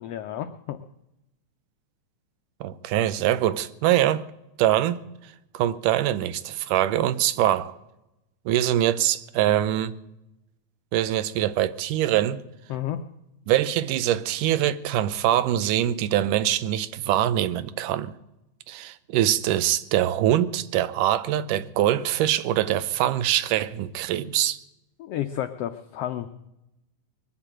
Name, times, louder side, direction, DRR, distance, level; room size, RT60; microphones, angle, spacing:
voice 1, 0.0-0.8 12.7-13.0 25.0-26.3, left 11 dB, 90° left, 1.3 m, -31 dB
voice 2, 2.6-4.2 4.6-5.0 5.5-7.8 8.5-9.9 10.9-12.4 13.5-18.1 18.7-24.6, right 12 dB, 85° right, 2.3 m, -23 dB
21.5 x 7.4 x 8.9 m
omnidirectional pair, 3.6 m